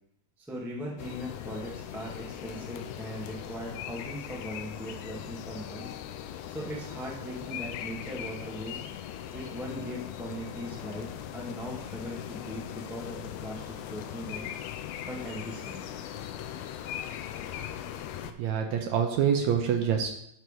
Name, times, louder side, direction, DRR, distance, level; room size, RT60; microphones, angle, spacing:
voice 1, 0.4-5.9 6.5-8.8 9.3-14.5 15.0-15.8, equal, ahead, -3 dB, 0.8 m, -39 dB
sound 1, 1.0-18.3, left 10 dB, 80° left, 1.7 m, -39 dB
voice 2, 18.4-20.1, right 8 dB, 75° right, 3 dB, 1.9 m, -26 dB
9.3 x 4.7 x 5.1 m, 0.74 s
omnidirectional pair, 3.6 m